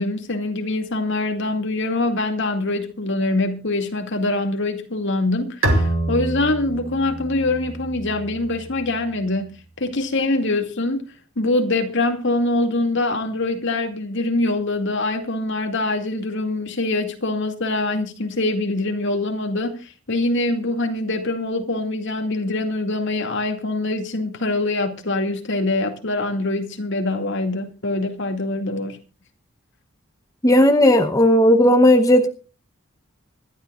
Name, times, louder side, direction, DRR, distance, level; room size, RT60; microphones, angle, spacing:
voice 1, 0.0-11.0 11.4-29.0, left 2 dB, 65° left, 2.4 m, -24 dB
Bowed string instrument, 5.6-9.1, right 1 dB, 80° right, 2.6 m, -26 dB
voice 2, 30.4-32.3, left 1 dB, 15° left, 0.9 m, -14 dB
25.5 x 12.0 x 2.4 m
head